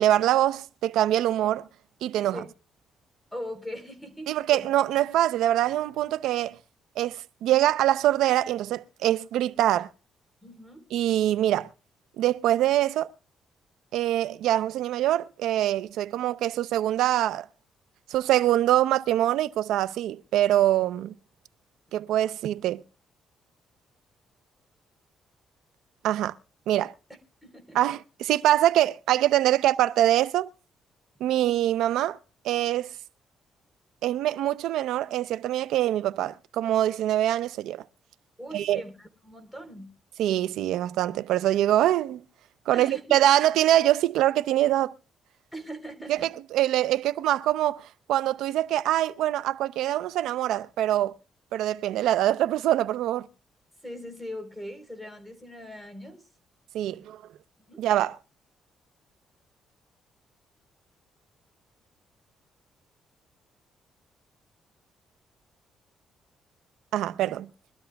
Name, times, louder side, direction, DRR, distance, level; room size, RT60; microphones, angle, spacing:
voice 1, 0.0-1.7 2.0-2.4 4.3-6.6 7.0-9.9 10.9-11.7 12.2-13.1 13.9-17.4 18.1-21.1 21.9-22.8 26.0-26.3 26.7-26.9 27.7-30.5 31.2-32.2 32.4-32.9 34.0-37.8 38.5-38.8 40.2-42.2 42.7-44.9 46.1-51.2 51.5-53.3 56.7-57.2 57.8-58.2 66.9-67.5, right 13 dB, 85° right, 0.6 m, -24 dB
voice 2, 3.3-4.7 10.4-10.8 27.4-27.8 38.4-39.9 42.7-43.1 45.5-46.3 53.8-56.3 57.7-57.9, equal, ahead, 3.8 m, -40 dB
24.0 x 12.5 x 2.3 m
cardioid pair, 90°, 0 cm